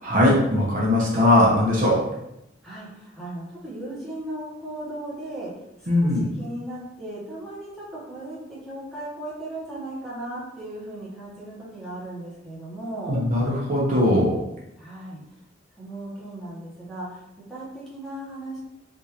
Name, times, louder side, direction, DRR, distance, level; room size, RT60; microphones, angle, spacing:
voice 1, 0.0-2.1 5.9-6.2 13.1-14.4, left 1 dB, 45° right, -4 dB, 0.8 m, -20 dB
voice 2, 2.6-5.5 5.8-13.2 14.8-15.2 15.8-17.2 17.5-18.6, right 1 dB, ahead, -8 dB, 1.0 m, -36 dB
3.5 x 2.6 x 2.9 m, 0.86 s
head